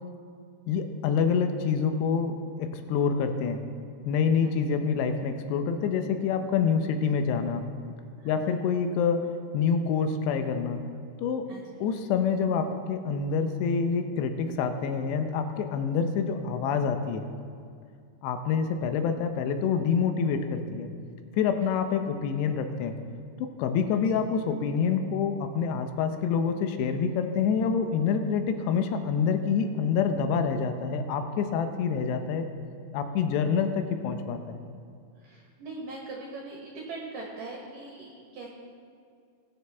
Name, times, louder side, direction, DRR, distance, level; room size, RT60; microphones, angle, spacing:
voice 1, 0.7-3.6 4.1-7.6 8.3-9.2 9.5-10.8 11.2-11.4 11.8-17.2 18.2-20.9 21.4-22.9 23.4-32.5 32.9-34.6, left 6 dB, 80° left, 7 dB, 2.9 m, -27 dB
voice 2, 8.2-8.5 11.5-11.8 21.5-21.7 23.9-24.2 35.2-38.5, right 3 dB, 60° right, -2 dB, 2.5 m, -41 dB
20.0 x 9.2 x 3.5 m, 2.3 s
omnidirectional pair, 5.1 m